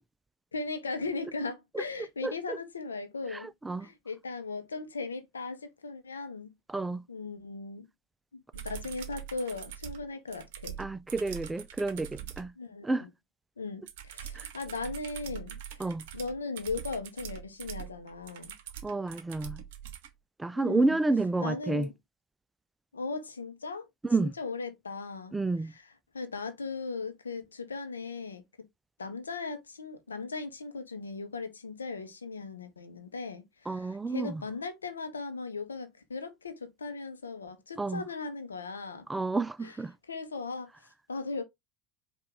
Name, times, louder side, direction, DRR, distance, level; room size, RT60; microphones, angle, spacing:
voice 1, 0.5-3.5 3.8-6.5 7.1-7.9 8.3-10.8 12.6-13.1 13.6-18.5 20.5-21.0 21.4-21.9 22.9-23.8 24.2-25.3 26.1-28.7 29.0-39.1 39.6-39.7 40.1-41.4, left 4 dB, 85° left, 0.7 m, -38 dB
voice 2, 2.2-2.6 3.3-3.9 6.7-7.0 10.8-12.5 12.8-13.1 14.3-14.5 15.8-16.0 18.8-19.6 20.4-21.9 24.0-24.3 25.3-25.7 33.7-34.4 37.8-38.0 39.1-39.9, right 3 dB, 10° right, 0.3 m, -30 dB
sound 1, 8.5-12.5 13.9-20.1 21.8-21.9, right 10 dB, 65° right, 0.7 m, -43 dB
4.6 x 2.4 x 3.4 m
figure-of-eight pair, 70°, 0 cm